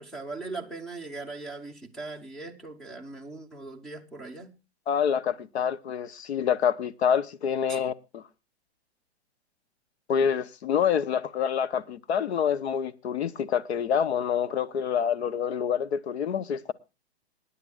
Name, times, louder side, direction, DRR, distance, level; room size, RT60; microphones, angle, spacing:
voice 1, 0.0-4.5 7.7-7.8, right 3 dB, ahead, 0.7 m, -39 dB
voice 2, 4.9-8.2 10.1-16.7, left 8 dB, 75° left, 0.9 m, -27 dB
25.5 x 9.8 x 2.3 m
hypercardioid pair, 155°, 33 cm